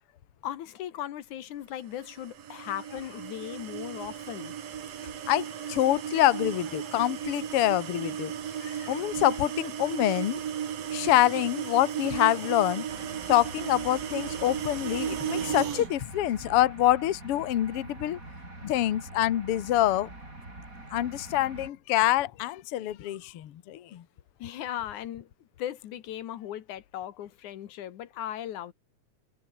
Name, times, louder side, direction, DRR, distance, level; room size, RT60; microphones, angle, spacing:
voice 1, 0.4-4.6 24.4-25.3 25.6-28.7, left 11 dB, 85° left, 2.8 m, -37 dB
sound 1, 2.0-15.9, right 9 dB, 60° right, 2.8 m, -35 dB
voice 2, 5.3-8.3 8.6-10.4 10.9-12.9 13.3-18.2 18.6-20.1 20.9-24.0, left 14 dB, 60° left, 1.9 m, -26 dB
sound 2, 12.9-21.7, right 2 dB, 25° right, 7.3 m, -45 dB
omnidirectional pair, 3.4 m